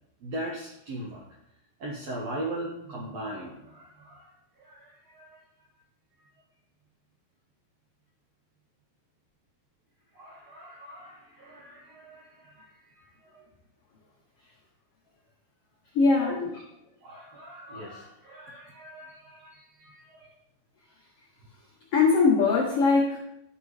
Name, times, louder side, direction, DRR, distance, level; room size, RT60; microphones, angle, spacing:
voice 1, 0.2-1.2 1.8-5.4 10.1-12.7 13.0-13.4 16.2-16.5 17.0-20.3, right 1 dB, 70° right, -3 dB, 1.6 m, -39 dB
voice 2, 15.9-16.4 21.9-23.2, left 4 dB, 80° left, -3 dB, 1.3 m, -21 dB
11.5 x 6.8 x 3.2 m, 0.81 s
omnidirectional pair, 4.5 m